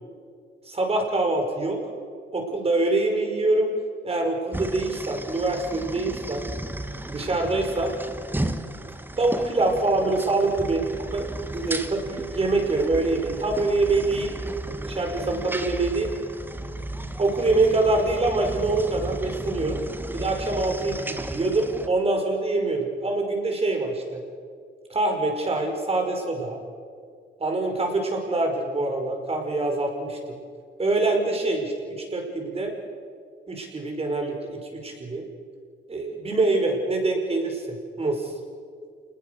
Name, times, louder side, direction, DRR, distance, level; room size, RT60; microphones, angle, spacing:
voice 1, 0.7-1.8 2.3-3.7 4.0-6.5 7.1-7.9 9.2-10.8 11.1-11.3 11.5-14.4 14.8-16.1 17.2-19.8 20.1-24.2 24.9-26.6 27.4-30.4 30.8-32.7 33.5-35.2 35.9-38.3, right 2 dB, 30° right, 3 dB, 5.4 m, -25 dB
sound 1, 4.5-21.9, right 1 dB, 10° right, 1.4 m, -34 dB
28.0 x 20.5 x 6.7 m, 2.1 s
cardioid pair, 90°, 20 cm